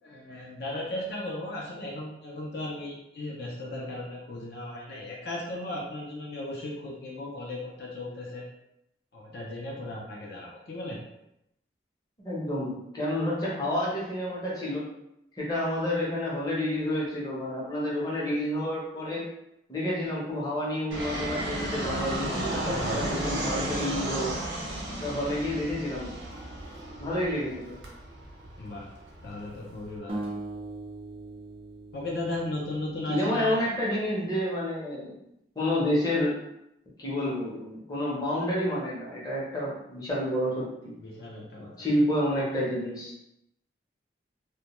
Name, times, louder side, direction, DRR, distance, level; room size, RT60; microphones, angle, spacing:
voice 1, 0.0-8.5 9.1-11.0 22.7-23.2 28.6-28.9 29.2-30.2 31.9-33.6 41.0-41.9, left 1 dB, 60° left, -3 dB, 0.4 m, -36 dB
voice 2, 12.2-14.9 15.3-19.3 19.7-24.4 25.0-26.1 27.0-27.7 33.1-35.2 35.6-36.4 37.0-40.9 41.8-43.1, left 1 dB, 20° left, -6 dB, 0.6 m, -29 dB
Fixed-wing aircraft airplane, 20.9-29.9, right 1 dB, 80° right, 0.7 m, -34 dB
sound 1, 30.1-33.3, right 2 dB, 30° right, 0.3 m, -40 dB
2.2 x 2.1 x 2.9 m, 0.83 s
head